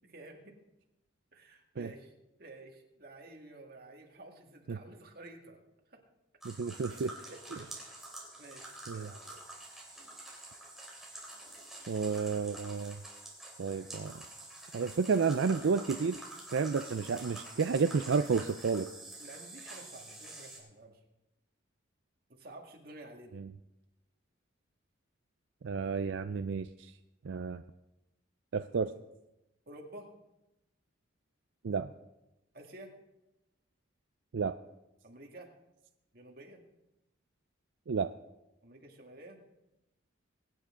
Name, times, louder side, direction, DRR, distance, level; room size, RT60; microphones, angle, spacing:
voice 1, 0.0-0.6 1.3-2.1 2.4-5.6 5.9-6.0 7.2-9.4 19.2-21.0 22.3-23.4 29.7-30.1 32.5-32.9 35.0-35.5 36.1-36.6 38.6-39.4, right 2 dB, 50° right, 1 dB, 2.0 m, -51 dB
sound 1, 6.4-20.6, right 2 dB, ahead, 3.2 m, -48 dB
voice 2, 6.4-7.1 8.9-9.1 11.9-13.0 13.6-14.2 14.7-16.2 16.5-18.9 23.4-23.5 25.6-26.9 27.2-27.6 28.5-28.9 31.6-31.9 34.3-34.6 37.9-38.1, right 5 dB, 75° right, 10 dB, 0.4 m, -31 dB
22.5 x 9.7 x 3.8 m, 0.94 s
head